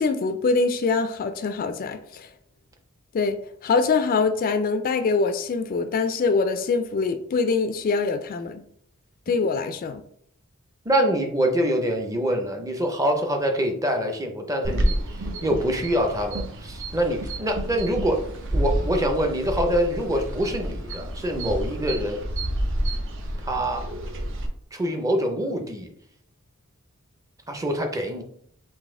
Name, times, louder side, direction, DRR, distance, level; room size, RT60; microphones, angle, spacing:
voice 1, 0.0-2.3 3.1-3.4 3.6-8.6 9.3-10.0, left 4 dB, 40° left, 9 dB, 0.3 m, -24 dB
voice 2, 10.8-18.2 18.5-22.2 23.4-23.9 24.7-25.9 27.5-28.2, equal, 15° right, 4 dB, 0.5 m, -25 dB
sound 1, 14.6-24.5, right 1 dB, 60° right, 0.6 m, -29 dB
4.0 x 2.6 x 3.6 m, 0.65 s
head